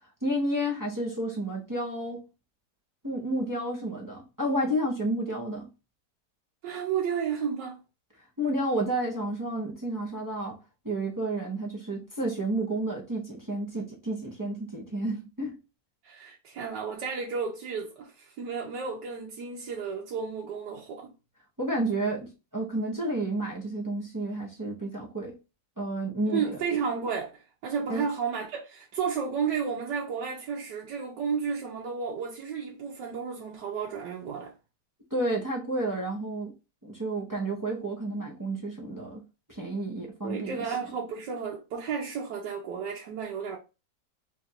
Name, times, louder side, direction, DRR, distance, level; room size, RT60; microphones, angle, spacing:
voice 1, 0.2-2.2 3.0-5.7 8.4-10.6 10.8-15.6 21.6-25.4 25.8-26.6 27.9-28.1 35.1-36.5 36.8-39.2 39.5-40.6, right 1 dB, 20° right, 0.5 m, -31 dB
voice 2, 6.6-7.8 16.0-21.1 26.3-34.5 40.2-43.6, right 6 dB, 85° right, 1.4 m, -32 dB
3.4 x 2.5 x 4.2 m
omnidirectional pair, 1.8 m